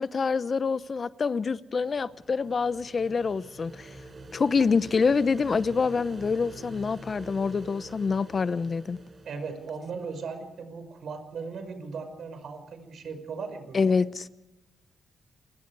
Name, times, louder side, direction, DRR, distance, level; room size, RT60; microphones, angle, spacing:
voice 1, 0.0-3.9 4.3-9.0 13.7-14.3, left 5 dB, 45° left, 0.8 m, -26 dB
sound 1, 1.6-10.4, right 2 dB, 40° right, 6.1 m, -46 dB
voice 2, 9.2-13.9, right 5 dB, 70° right, 5.6 m, -38 dB
29.0 x 22.0 x 4.8 m
cardioid pair, 70°, 0 cm